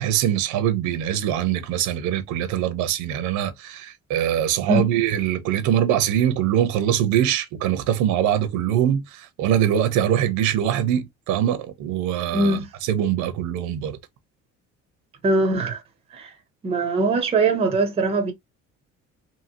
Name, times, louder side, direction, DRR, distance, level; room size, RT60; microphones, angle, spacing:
voice 1, 0.0-14.0, right 10 dB, 75° right, 0.7 m, -23 dB
voice 2, 12.3-12.7 15.2-15.8 16.1-16.3 16.6-18.3, right 2 dB, 20° right, 0.5 m, -21 dB
2.8 x 2.7 x 2.6 m
cardioid pair, 180°, 29 cm